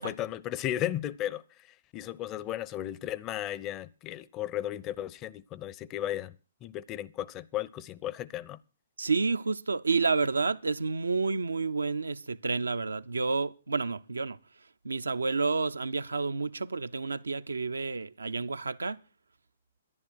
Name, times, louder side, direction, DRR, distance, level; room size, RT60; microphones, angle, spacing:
voice 1, 0.0-1.4 1.9-6.4 6.6-8.6, left 12 dB, 30° left, 0.5 m, -35 dB
voice 2, 9.0-14.4 14.8-19.0, right 4 dB, 85° right, 0.5 m, -30 dB
11.0 x 10.5 x 6.2 m
hypercardioid pair, 125°, 0 cm